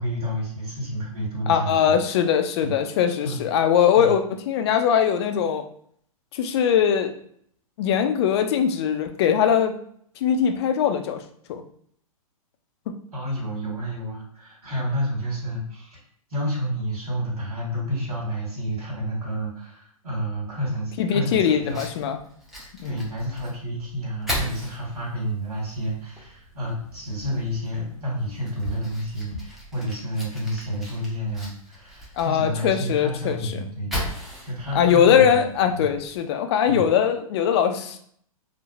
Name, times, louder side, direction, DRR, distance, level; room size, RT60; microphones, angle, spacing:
voice 1, 0.0-2.0 2.6-2.8 3.2-3.4 3.9-4.1 13.1-16.0 16.3-21.8 22.8-35.4 35.7-35.9 36.7-36.9, equal, 75° right, -5 dB, 1.4 m, -30 dB
voice 2, 1.5-5.6 6.3-7.1 7.8-9.7 10.2-11.2 11.5-11.6 21.0-22.2 22.8-23.0 32.2-33.6 34.7-38.0, left 8 dB, 45° left, 7 dB, 0.4 m, -21 dB
Fire, 21.6-36.2, equal, ahead, 0.6 m, -38 dB
3.1 x 2.0 x 2.3 m, 0.62 s
hypercardioid pair, 120°, 19 cm